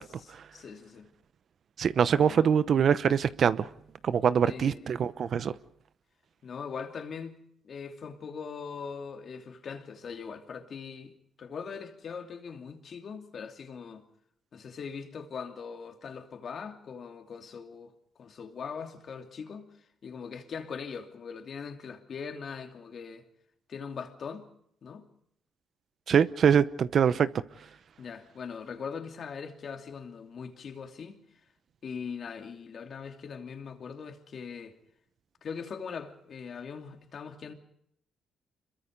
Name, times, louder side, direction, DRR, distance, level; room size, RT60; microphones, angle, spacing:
voice 1, 0.2-1.1 2.1-2.5 4.4-4.9 6.4-7.4 7.6-14.0 14.5-17.9 18.2-19.7 20.0-23.3 23.7-24.5 24.8-25.1 27.0-27.2 28.0-31.2 31.8-34.8 35.4-37.5, left 6 dB, 55° left, 2.8 m, -41 dB
voice 2, 1.8-3.7 4.0-5.5 26.1-27.3, right 7 dB, 55° right, 0.8 m, -24 dB
26.5 x 22.0 x 5.3 m
cardioid pair, 90°, 0 cm